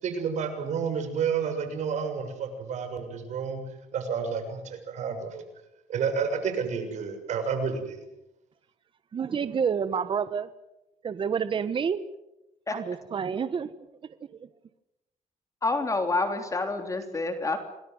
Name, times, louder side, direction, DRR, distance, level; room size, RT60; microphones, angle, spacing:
voice 1, 0.0-3.6 3.9-5.4 5.9-8.0, right 6 dB, 70° right, 6.9 m, -30 dB
voice 2, 9.1-10.5 11.0-12.0 12.7-13.7, right 7 dB, 40° right, 1.3 m, -28 dB
voice 3, 15.6-17.7, left 3 dB, 25° left, 3.3 m, -28 dB
27.5 x 21.5 x 8.0 m
cardioid pair, 110°, 13 cm